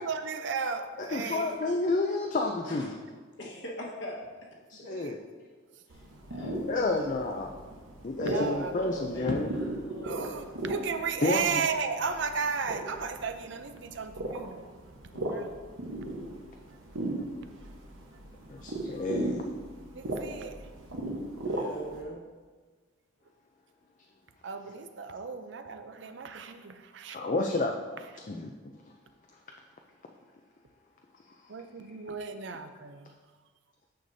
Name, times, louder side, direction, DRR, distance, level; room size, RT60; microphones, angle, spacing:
voice 1, 0.0-1.6 4.8-5.2 8.2-8.8 9.1-9.2 10.0-14.6 15.3-15.6 19.9-20.7 24.4-27.2 31.5-33.1, right 5 dB, 65° right, 8 dB, 0.5 m, -34 dB
voice 2, 1.0-2.9 4.7-5.2 6.7-7.5 8.0-9.5 11.2-11.6 18.5-19.4 27.1-27.8 28.3-28.5, left 2 dB, 40° left, 2 dB, 0.4 m, -30 dB
voice 3, 2.7-3.0 3.4-4.2 6.3-7.1 8.2-10.7 15.1-15.4 21.5-22.2, left 1 dB, 65° left, -2 dB, 1.4 m, -39 dB
sound 1, 5.9-22.0, right 1 dB, 80° right, 1.1 m, -37 dB
9.2 x 6.7 x 2.7 m, 1.4 s
head